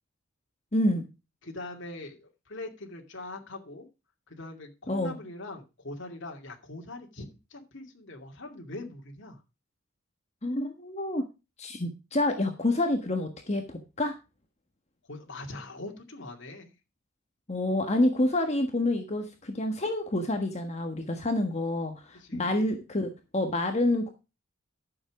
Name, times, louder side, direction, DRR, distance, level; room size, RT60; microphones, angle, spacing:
voice 1, 0.7-1.1 4.9-5.1 10.4-11.3 11.6-14.1 17.5-24.1, left 1 dB, 30° left, 4 dB, 1.4 m, -28 dB
voice 2, 1.4-3.9 4.3-9.4 15.0-16.7 22.1-22.6, left 2 dB, 60° left, 1 dB, 2.5 m, -42 dB
12.5 x 7.0 x 4.8 m, 0.28 s
head